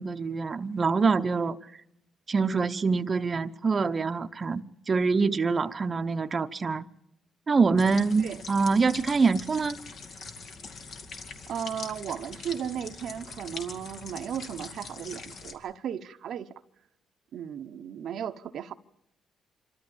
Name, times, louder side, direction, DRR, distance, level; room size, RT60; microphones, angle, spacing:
voice 1, 0.0-1.6 2.3-6.9 7.5-9.7, right 4 dB, 35° right, 0.8 m, -25 dB
sound 1, 7.8-15.5, left 4 dB, 65° left, 2.4 m, -43 dB
voice 2, 11.5-16.5 17.3-18.7, right 9 dB, 70° right, 0.9 m, -35 dB
25.5 x 13.5 x 8.7 m
cardioid pair, 90°, 0 cm